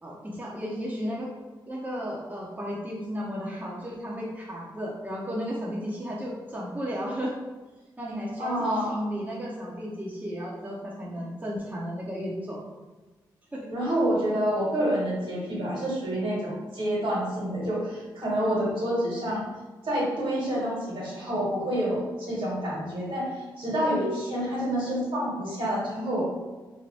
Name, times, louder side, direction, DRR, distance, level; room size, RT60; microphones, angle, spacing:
voice 1, 0.0-1.3 1.7-7.4 8.0-8.6 8.9-12.6 13.5-13.7, equal, 20° right, -4 dB, 0.7 m, -34 dB
voice 2, 8.4-9.0 13.7-19.5 19.8-26.2, equal, 65° right, -6 dB, 1.4 m, -28 dB
2.7 x 2.2 x 3.3 m, 1.2 s
supercardioid pair, 40°, 10 cm